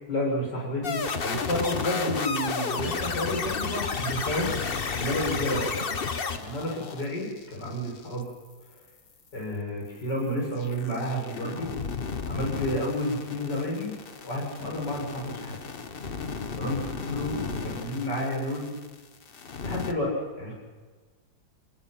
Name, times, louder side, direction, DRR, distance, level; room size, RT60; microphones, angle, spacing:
voice 1, 0.1-5.6 6.3-8.3 9.3-11.7 12.3-15.6 16.6-18.8 19.6-20.5, equal, 60° left, -1 dB, 6.4 m, -31 dB
sound 1, 0.8-8.2 10.6-19.0 19.2-19.9, left 5 dB, 35° left, 1.0 m, -33 dB
26.5 x 20.0 x 5.9 m, 1.4 s
omnidirectional pair, 2.1 m